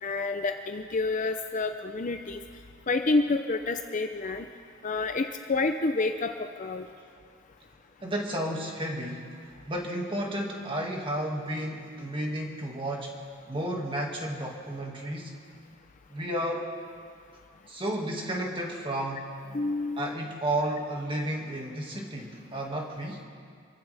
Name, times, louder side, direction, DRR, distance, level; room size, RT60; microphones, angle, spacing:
voice 1, 0.0-2.4 2.9-4.5 4.8-6.3 6.6-6.9 19.5-20.0, left 3 dB, 35° left, 6 dB, 0.6 m, -28 dB
voice 2, 8.0-9.3 9.7-13.1 13.5-15.3 16.1-16.7 17.7-19.3 20.0-23.2, right 1 dB, 25° right, -1 dB, 2.0 m, -32 dB
27.0 x 15.5 x 3.5 m, 2.2 s
head